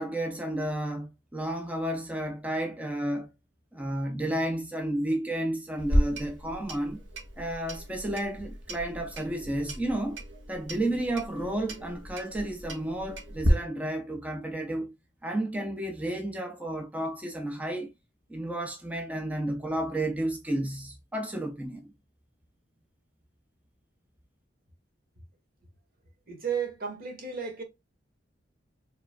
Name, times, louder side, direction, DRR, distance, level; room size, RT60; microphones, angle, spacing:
voice 1, 0.0-3.3 3.7-7.0 7.4-10.2 10.5-14.9 15.2-17.9 18.3-21.9, right 1 dB, 10° right, 0.6 m, -32 dB
Clock, 5.8-13.5, equal, 90° right, 1.1 m, -33 dB
voice 2, 26.3-27.6, right 6 dB, 55° right, 1.4 m, -33 dB
4.7 x 3.3 x 2.2 m
head